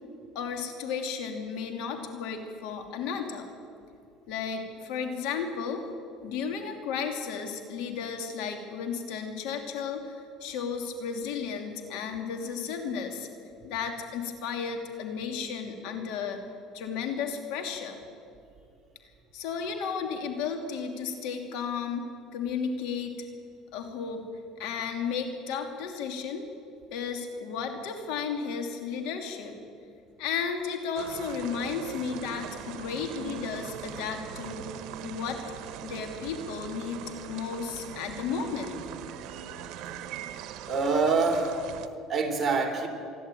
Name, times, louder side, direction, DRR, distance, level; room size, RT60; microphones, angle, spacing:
voice 1, 0.3-3.5 4.3-5.8 6.2-13.3 13.6-16.4 16.7-18.0 19.3-22.0 22.3-23.3 23.7-24.3 24.6-26.4 26.9-29.6 30.2-34.7 35.0-35.4 35.8-38.8, left 6 dB, 75° left, 5 dB, 2.8 m, -33 dB
sound 1, 30.9-41.9, right 10 dB, 65° right, 1.2 m, -41 dB
voice 2, 40.6-42.9, right 4 dB, 30° right, 2 dB, 3.3 m, -26 dB
26.5 x 11.5 x 9.2 m, 2.5 s
cardioid pair, 120°, 0 cm